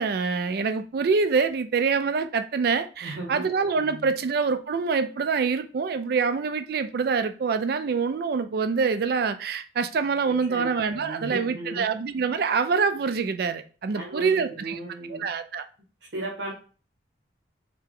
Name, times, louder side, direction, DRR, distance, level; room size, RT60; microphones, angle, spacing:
voice 1, 0.0-14.8 15.1-15.6, right 5 dB, 55° right, 0.3 m, -25 dB
voice 2, 3.0-3.4 3.8-4.1 10.4-11.9 13.9-15.3 16.1-16.5, right 1 dB, 75° right, 1.0 m, -36 dB
3.3 x 2.8 x 3.6 m
head